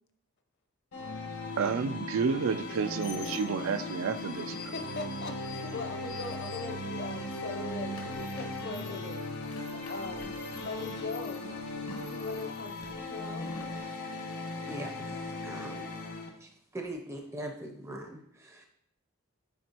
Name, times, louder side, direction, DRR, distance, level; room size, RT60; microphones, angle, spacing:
sound 1, 0.9-16.3, left 2 dB, 90° left, 1.2 m, -38 dB
voice 1, 1.6-4.5, right 6 dB, 65° right, 0.3 m, -30 dB
sound 2, 2.5-7.1 7.4-13.8, left 5 dB, 75° left, 1.0 m, -49 dB
Piano, 3.0-8.3, left 4 dB, 85° right, 1.5 m, -50 dB
voice 2, 4.5-8.0 8.4-9.2 9.4-11.5 11.9-13.5, left 3 dB, 50° left, 0.7 m, -40 dB
voice 3, 14.7-15.2 15.4-15.9 16.4-18.7, right 1 dB, 10° right, 0.5 m, -41 dB
9.0 x 4.3 x 2.9 m
head